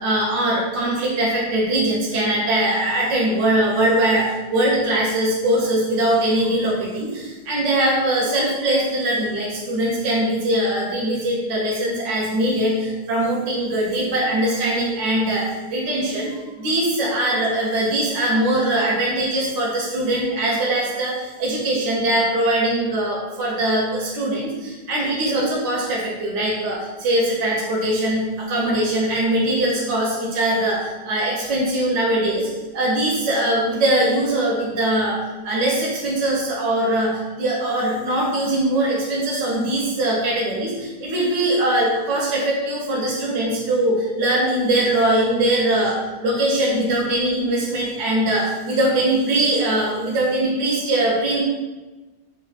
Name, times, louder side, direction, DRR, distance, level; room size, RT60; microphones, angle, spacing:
voice 1, 0.0-15.4 15.7-16.3 16.6-21.1 21.4-30.8 31.0-32.4 32.7-35.2 35.4-37.1 37.4-40.7 41.0-46.0 46.2-51.4, right 1 dB, 85° right, -4 dB, 0.9 m, -21 dB
3.3 x 2.3 x 2.3 m, 1.2 s
omnidirectional pair, 1.2 m